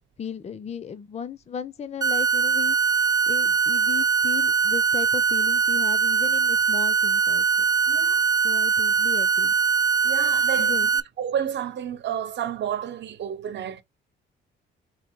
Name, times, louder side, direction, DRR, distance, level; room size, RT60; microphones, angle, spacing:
voice 1, 0.2-7.5 8.4-9.5 10.6-10.9, left 7 dB, 35° left, 0.6 m, -36 dB
sound 1, 2.0-11.0, right 6 dB, 20° right, 0.4 m, -22 dB
voice 2, 7.9-8.2 10.0-10.7 11.2-13.8, right 9 dB, 65° right, 0.9 m, -30 dB
4.1 x 2.7 x 4.5 m
cardioid pair, 90°, 20 cm